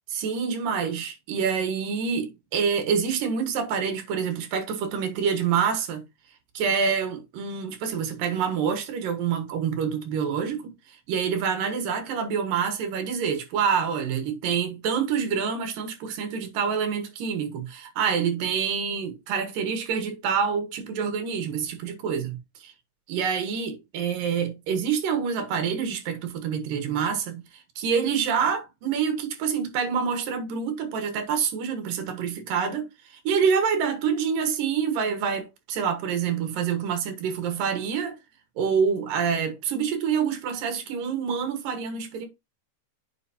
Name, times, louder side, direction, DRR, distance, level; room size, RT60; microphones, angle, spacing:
voice 1, 0.1-6.0 6.5-22.4 22.6-22.7 23.1-38.2 38.6-42.3, right 6 dB, 85° right, 3.2 m, -27 dB
9.2 x 5.1 x 2.8 m
omnidirectional pair, 3.8 m